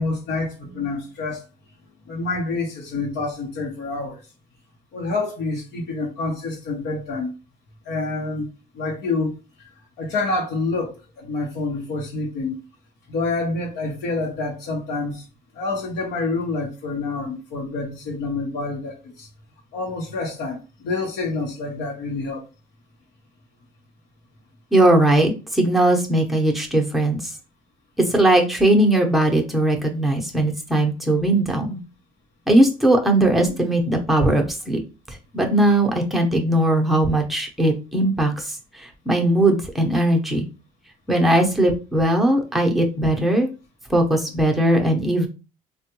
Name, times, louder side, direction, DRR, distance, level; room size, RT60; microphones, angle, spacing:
voice 1, 0.0-1.4 2.1-4.2 4.9-7.3 7.8-8.5 8.7-9.4 10.0-12.6 13.1-15.2 15.5-19.3 19.7-22.5, left 3 dB, 70° left, 0.9 m, -27 dB
voice 2, 24.7-27.3 28.0-31.8 32.5-34.8 35.1-40.5 41.1-43.5 43.9-45.3, right 1 dB, ahead, 0.8 m, -19 dB
3.3 x 2.2 x 2.9 m
cardioid pair, 110°, 17 cm